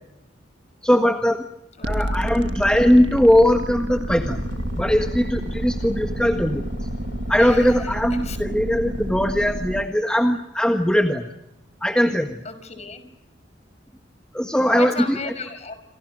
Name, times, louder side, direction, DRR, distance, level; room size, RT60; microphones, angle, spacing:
voice 1, 0.8-1.4 1.8-4.4 4.8-6.7 7.3-11.3 11.8-12.4 14.3-15.2, equal, 5° left, 4 dB, 1.6 m, -20 dB
voice 2, 1.8-2.3 7.4-7.9 8.2-8.4 12.4-13.0 14.7-15.7, left 4 dB, 35° left, 11 dB, 5.8 m, -35 dB
sound 1, 1.8-9.8, right 1 dB, 60° right, 1.8 m, -29 dB
sound 2, 4.1-9.3, equal, 65° left, 3.1 m, -36 dB
28.0 x 27.5 x 6.4 m, 0.85 s
head